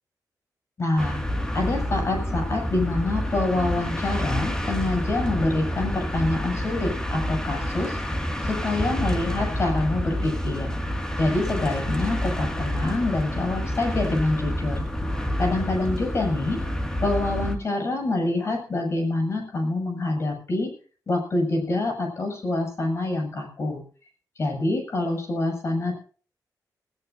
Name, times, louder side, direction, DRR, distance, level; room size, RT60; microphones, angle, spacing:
voice 1, 0.8-1.2 1.5-8.0 8.4-10.7 11.2-14.9 15.4-16.6 17.0-20.7 21.1-23.8 24.4-26.0, left 2 dB, 40° left, 4 dB, 7.0 m, -26 dB
sound 1, 1.0-17.6, equal, 10° left, 2.1 m, -28 dB
20.0 x 19.0 x 2.7 m, 0.40 s
wide cardioid pair, 165°, 7 cm